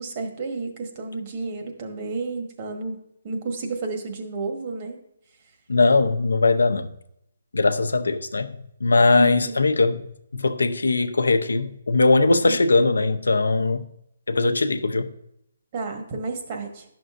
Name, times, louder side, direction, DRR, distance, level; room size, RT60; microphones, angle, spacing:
voice 1, 0.0-3.0 3.2-5.0 9.2-9.7 12.4-12.6 15.7-16.8, right 3 dB, 35° right, 1.4 m, -31 dB
voice 2, 5.7-6.9 7.5-8.5 8.8-10.0 10.3-13.9 14.3-15.1, left 3 dB, 90° left, 0.6 m, -20 dB
11.0 x 6.0 x 2.6 m
hypercardioid pair, 155°, 0 cm